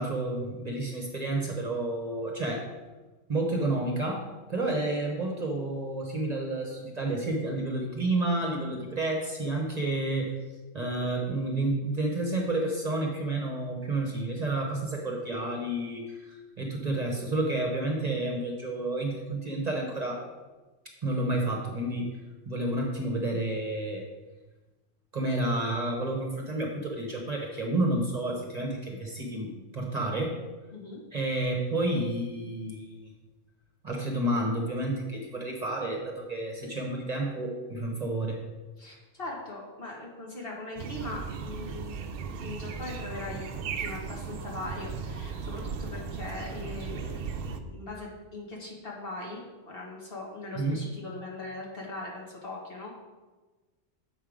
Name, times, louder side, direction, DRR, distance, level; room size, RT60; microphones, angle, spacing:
voice 1, 0.0-2.6 3.3-4.2 4.5-10.3 10.7-20.2 21.0-22.1 22.5-24.0 25.1-30.3 31.1-33.1 33.8-38.4 50.5-50.8, right 2 dB, 35° right, -1 dB, 1.1 m, -30 dB
voice 2, 38.8-42.0 42.4-52.9, left 2 dB, 50° left, -2 dB, 1.7 m, -40 dB
sound 1, 40.8-47.6, right 5 dB, 60° right, 0.7 m, -36 dB
7.4 x 5.5 x 5.0 m, 1.2 s
omnidirectional pair, 1.3 m